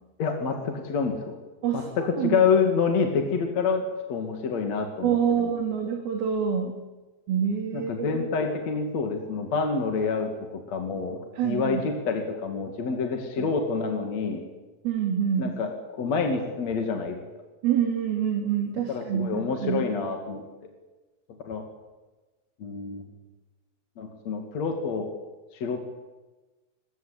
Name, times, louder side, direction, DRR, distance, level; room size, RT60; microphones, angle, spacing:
voice 1, 0.2-1.3 1.7-3.8 4.1-5.5 7.7-10.3 10.7-14.4 15.4-17.2 18.9-20.4 21.5-21.6 22.6-23.0 24.0-25.1 25.5-25.8, left 5 dB, 50° left, 4 dB, 3.5 m, -27 dB
voice 2, 1.6-2.5 5.0-6.7 7.3-8.1 11.4-11.8 13.4-13.5 14.8-15.5 17.6-19.9, right 8 dB, 80° right, 3 dB, 4.6 m, -26 dB
27.0 x 23.0 x 8.4 m, 1.2 s
omnidirectional pair, 4.2 m